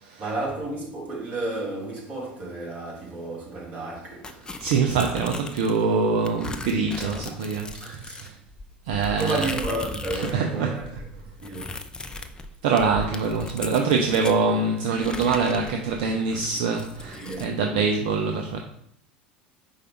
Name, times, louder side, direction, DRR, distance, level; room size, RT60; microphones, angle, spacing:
voice 1, 0.2-4.4 7.7-8.2 8.9-11.8 17.2-17.6, right 2 dB, 30° right, 1.8 m, -32 dB
sound 1, 4.2-5.9 6.3-10.4 10.7-14.4 14.9-17.5, left 3 dB, 15° left, 0.4 m, -37 dB
voice 2, 4.6-8.3 8.9-9.4 10.1-10.7 12.1-12.2 12.6-18.6, right 4 dB, 55° right, 0.4 m, -24 dB
4.8 x 2.3 x 4.5 m
figure-of-eight pair, 75°, 5 cm